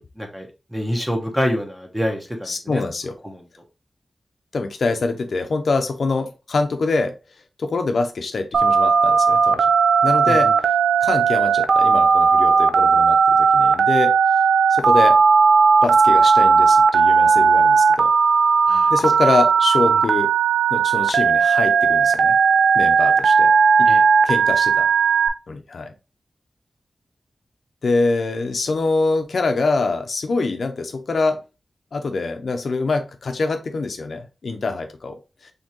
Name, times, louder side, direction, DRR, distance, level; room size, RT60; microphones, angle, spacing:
voice 1, 0.0-2.8 3.2-3.4 10.3-10.5 18.7-18.9 19.9-20.0 23.9-24.0, equal, 5° right, 2 dB, 1.1 m, -27 dB
voice 2, 2.5-3.1 4.5-7.1 7.6-9.7 10.0-10.5 11.0-14.1 14.7-15.2 15.8-18.1 18.9-20.3 20.7-22.4 22.7-23.5 23.8-23.9 24.2-24.9 25.5-25.9 27.8-31.4 31.9-35.5, left 3 dB, 70° left, 6 dB, 0.6 m, -24 dB
Telephone, 8.5-25.3, right 5 dB, 85° right, 0.5 m, -16 dB
4.4 x 3.3 x 3.0 m, 0.28 s
wide cardioid pair, 120°, 0 cm